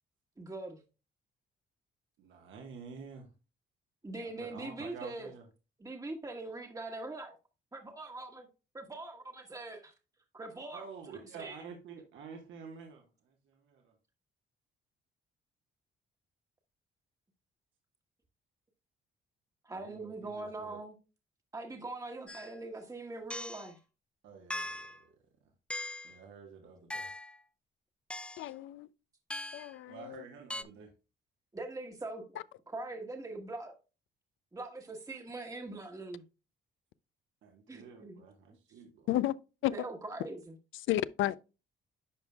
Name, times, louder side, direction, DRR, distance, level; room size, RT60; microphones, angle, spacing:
voice 1, 0.4-0.8 4.0-5.3 5.8-7.3 7.7-8.5 8.7-9.9 10.3-10.8 11.3-11.6 19.6-20.9 21.5-23.8 31.5-32.2 32.7-33.8 34.5-36.2 37.7-38.2 39.7-40.4, right 2 dB, 15° right, 1.2 m, -42 dB
voice 2, 2.2-3.3 4.2-5.5 10.7-13.9 19.7-20.8 24.2-25.2 26.0-27.1 29.9-30.9 37.4-39.1, right 5 dB, 75° right, 1.3 m, -49 dB
sound 1, 22.3-22.5 23.3-23.7 24.5-25.0 25.7-26.2 26.9-27.4 28.1-28.5 29.3-29.7 30.5-30.6, left 1 dB, 5° left, 0.4 m, -40 dB
voice 3, 28.4-28.9 29.5-30.2 39.1-39.4 39.6-39.7 40.7-41.4, left 14 dB, 80° left, 0.4 m, -32 dB
10.0 x 5.3 x 2.2 m
cardioid pair, 90°, 20 cm